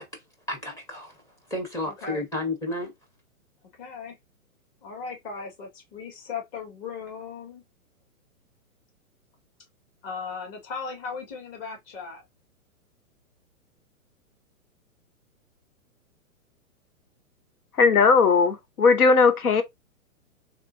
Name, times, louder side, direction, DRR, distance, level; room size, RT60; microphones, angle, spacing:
voice 1, 0.5-1.2 1.5-2.9, left 2 dB, 10° left, 0.5 m, -32 dB
voice 2, 1.9-2.2 3.8-4.2 4.8-7.6 10.0-12.2, left 5 dB, 40° left, 2.1 m, -37 dB
voice 3, 17.8-19.6, left 4 dB, 90° left, 0.9 m, -18 dB
3.6 x 3.3 x 2.4 m
hypercardioid pair, 130°, 43 cm